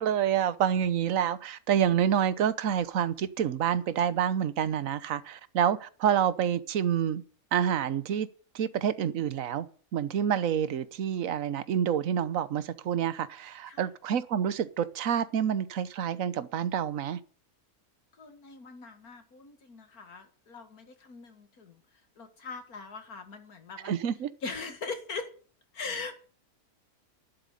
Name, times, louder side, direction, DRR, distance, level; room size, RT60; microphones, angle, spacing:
voice 1, 0.0-7.2 7.5-8.3 8.5-9.7 9.9-17.2 23.8-24.3, right 9 dB, 65° right, 1.3 m, -28 dB
voice 2, 18.2-21.8 22.2-23.9 24.4-25.3 25.7-26.2, left 4 dB, 80° left, 2.3 m, -41 dB
11.5 x 7.9 x 9.9 m
omnidirectional pair, 1.5 m